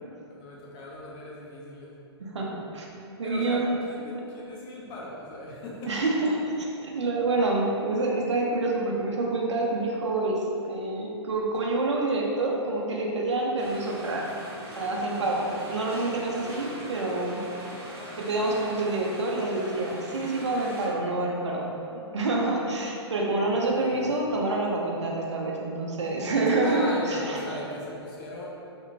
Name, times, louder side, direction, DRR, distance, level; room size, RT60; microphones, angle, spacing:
voice 1, 0.3-1.9 3.2-6.0 23.5-24.2 26.6-28.5, left 1 dB, 30° left, -5 dB, 0.6 m, -39 dB
voice 2, 2.2-2.9 3.2-3.8 5.9-14.4 14.7-17.4 18.2-27.4, right 2 dB, 85° right, -2 dB, 0.5 m, -27 dB
sound 1, 13.6-20.9, right 1 dB, 20° right, 0.6 m, -42 dB
2.9 x 2.1 x 2.5 m, 2.7 s
hypercardioid pair, 120°, 14 cm